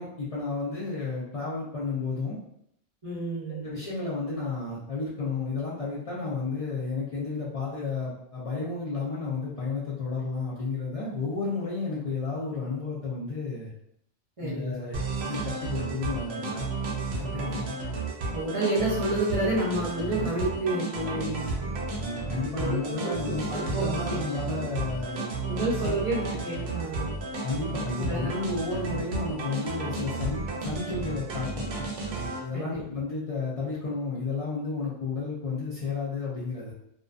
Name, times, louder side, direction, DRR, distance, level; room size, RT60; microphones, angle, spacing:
voice 1, 0.0-2.4 3.5-13.7 14.4-15.0 15.2-16.7 21.9-25.4 25.8-25.9 27.4-31.6 32.4-36.7, left 4 dB, 45° left, -9 dB, 0.5 m, -32 dB
voice 2, 3.0-3.7 14.4-14.7 17.2-17.8 18.3-21.8 22.6-22.8 23.5-23.8 25.5-27.1 28.1-28.2 32.5-32.8, right 2 dB, 40° right, -8 dB, 0.5 m, -29 dB
sound 1, 14.9-32.4, right 3 dB, 75° right, 0.8 m, -32 dB
2.4 x 2.2 x 2.4 m, 0.74 s
omnidirectional pair, 1.1 m